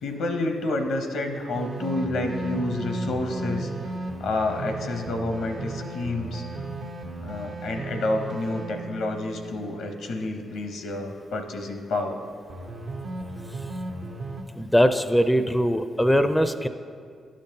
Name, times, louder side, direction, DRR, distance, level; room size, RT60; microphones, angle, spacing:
voice 1, 0.0-3.7 4.2-6.4 7.2-12.2, left 2 dB, 75° left, 5 dB, 0.7 m, -29 dB
sound 1, 1.5-10.2 12.5-14.4, right 1 dB, 70° right, 0.8 m, -35 dB
voice 2, 14.6-16.7, equal, 5° left, 10 dB, 0.4 m, -21 dB
11.5 x 5.2 x 2.8 m, 2.2 s
supercardioid pair, 50°, 0 cm